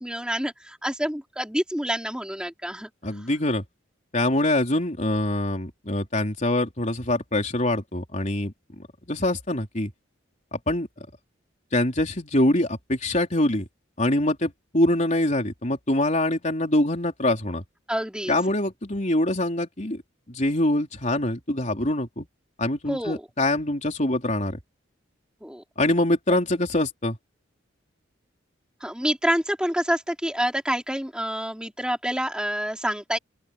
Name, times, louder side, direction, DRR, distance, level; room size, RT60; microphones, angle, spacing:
voice 1, 0.0-2.9 17.9-18.3 22.9-23.2 25.4-25.6 28.8-33.2, equal, 5° right, 3.8 m, -27 dB
voice 2, 3.0-3.6 4.1-8.5 9.1-9.9 10.5-11.1 11.7-13.7 14.0-17.6 18.3-20.0 20.3-22.3 22.6-24.6 25.8-27.2, left 1 dB, 40° left, 4.0 m, -24 dB
open air
head